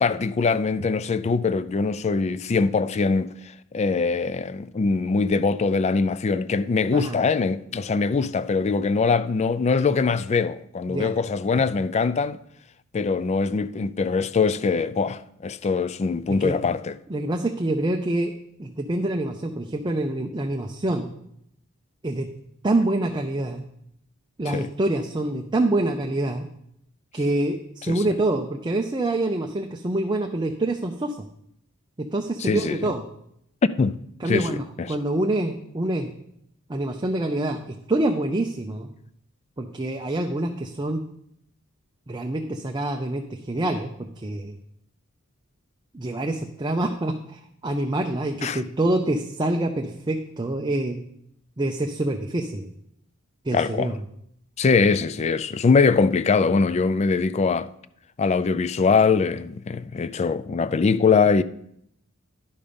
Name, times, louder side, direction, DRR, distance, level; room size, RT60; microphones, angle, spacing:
voice 1, 0.0-3.3 3.7-12.4 12.9-17.0 24.5-24.7 27.9-28.0 32.4-32.9 33.8-34.0 34.3-34.9 48.4-48.6 53.5-53.9 54.6-57.7 58.2-61.4, left 4 dB, 30° left, 0.3 m, -22 dB
voice 2, 17.1-18.3 18.6-21.1 22.0-22.3 22.6-23.6 24.4-26.5 27.1-31.2 32.0-33.0 34.2-36.1 36.7-38.9 39.6-41.0 42.1-43.9 44.2-44.6 45.9-51.0 51.6-52.7 53.4-53.9, right 1 dB, 20° right, 0.5 m, -26 dB
11.0 x 5.4 x 5.2 m
head